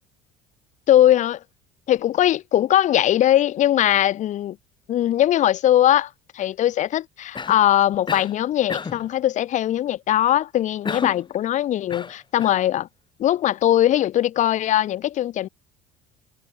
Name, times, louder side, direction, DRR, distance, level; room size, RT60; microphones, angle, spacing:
voice 1, 0.9-1.4 1.9-4.6 4.9-12.9 13.2-15.5, left 12 dB, 50° left, 1.3 m, -20 dB
Cough, 7.3-7.7 8.1-8.4 8.7-9.1 10.8-11.3 11.9-12.6, left 5 dB, 30° left, 5.4 m, -31 dB
hypercardioid pair, 65°, 16 cm